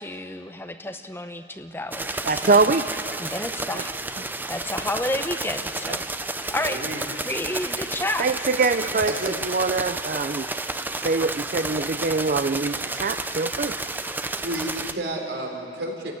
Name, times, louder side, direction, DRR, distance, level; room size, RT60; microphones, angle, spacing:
voice 1, 0.0-2.6 3.2-3.9 4.5-6.8 7.2-8.3, left 1 dB, 15° left, 7 dB, 0.9 m, -31 dB
sound 1, 1.9-14.9, right 2 dB, 10° right, 0.7 m, -31 dB
voice 2, 2.3-3.0 3.7-3.8 8.2-9.1 9.4-10.5 11.0-13.7, right 3 dB, 50° right, 10 dB, 0.5 m, -23 dB
voice 3, 6.4-7.0 9.1-9.3 14.4-16.1, right 1 dB, 75° right, 1 dB, 4.1 m, -31 dB
28.5 x 16.0 x 9.8 m, 2.7 s
head